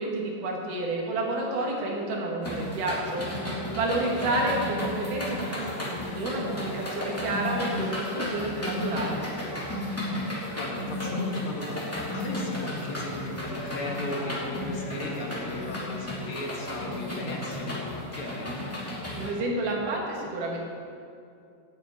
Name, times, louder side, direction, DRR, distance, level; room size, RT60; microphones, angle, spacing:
voice 1, 0.0-3.2 3.7-9.2 19.2-20.6, right 2 dB, 85° right, -1 dB, 3.4 m, -30 dB
sound 1, 2.4-19.3, left 1 dB, 5° left, 2.1 m, -33 dB
voice 2, 3.9-4.3 9.8-18.5, left 2 dB, 50° left, 0 dB, 2.1 m, -36 dB
9.2 x 9.1 x 8.4 m, 2.4 s
omnidirectional pair, 3.5 m